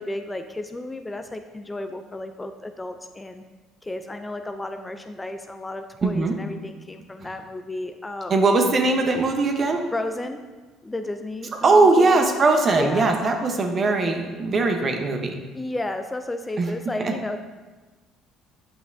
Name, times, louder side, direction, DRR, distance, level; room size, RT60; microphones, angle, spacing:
voice 1, 0.0-3.4 3.8-8.3 9.9-10.4 10.8-12.3 12.7-13.2 15.5-17.4, left 2 dB, 15° left, 7 dB, 0.5 m, -33 dB
voice 2, 6.0-6.4 8.3-9.8 11.6-15.4 16.6-16.7 17.0-17.1, right 3 dB, 40° right, 4 dB, 0.9 m, -20 dB
8.4 x 5.6 x 2.7 m, 1.3 s
supercardioid pair, 75°, 0 cm